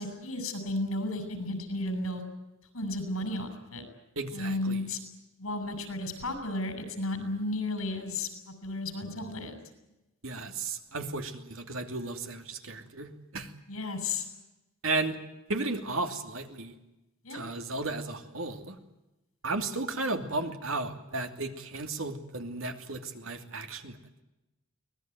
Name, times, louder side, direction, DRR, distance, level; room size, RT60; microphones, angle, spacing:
voice 1, 0.0-2.2 2.7-3.8 4.3-5.0 5.4-9.5 13.7-14.2 17.2-17.4, left 2 dB, 85° left, 9 dB, 6.7 m, -33 dB
voice 2, 4.2-4.8 10.2-13.5 14.8-15.2 15.5-16.7 17.3-18.8 19.4-23.9, right 3 dB, 75° right, 6 dB, 2.8 m, -34 dB
24.5 x 19.0 x 9.3 m, 0.98 s
head